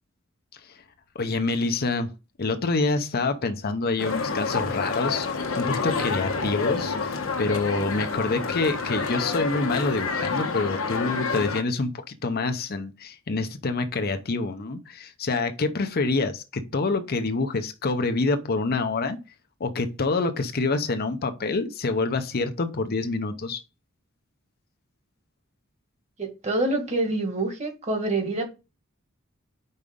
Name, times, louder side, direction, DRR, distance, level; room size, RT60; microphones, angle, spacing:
voice 1, 1.1-2.1 2.4-5.3 5.6-19.2 19.6-23.6, left 3 dB, 50° left, 0.7 m, -27 dB
sound 1, 4.0-11.6, left 4 dB, 75° left, 1.2 m, -28 dB
voice 2, 26.2-28.5, right 2 dB, 35° right, 1.7 m, -26 dB
5.4 x 4.8 x 5.0 m
head